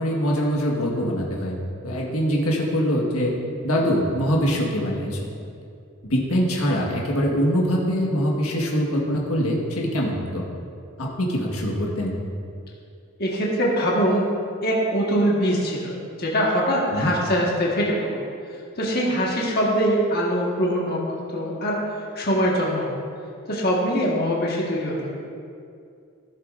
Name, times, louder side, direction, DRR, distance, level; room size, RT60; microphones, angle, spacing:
voice 1, 0.0-1.6 1.8-3.3 3.6-5.2 6.0-10.5 11.0-12.1 16.9-17.1, equal, 85° left, -2 dB, 1.5 m, -23 dB
voice 2, 13.2-14.3 14.6-18.2 18.8-21.0 21.3-23.0 23.5-25.2, equal, 45° left, -4 dB, 1.4 m, -23 dB
15.0 x 7.6 x 2.5 m, 2.4 s
head